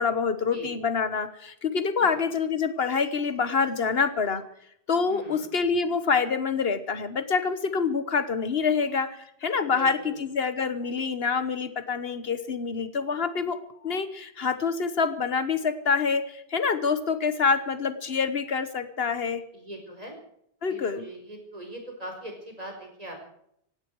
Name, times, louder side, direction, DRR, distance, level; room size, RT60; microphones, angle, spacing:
voice 1, 0.0-4.4 4.9-13.6 13.8-19.4 20.6-21.1, left 5 dB, 75° left, 12 dB, 1.4 m, -26 dB
voice 2, 5.1-5.5 9.6-10.2 19.5-20.2 20.7-23.1, right 1 dB, 35° right, 3 dB, 4.8 m, -41 dB
17.0 x 16.5 x 4.7 m, 0.71 s
omnidirectional pair, 1.0 m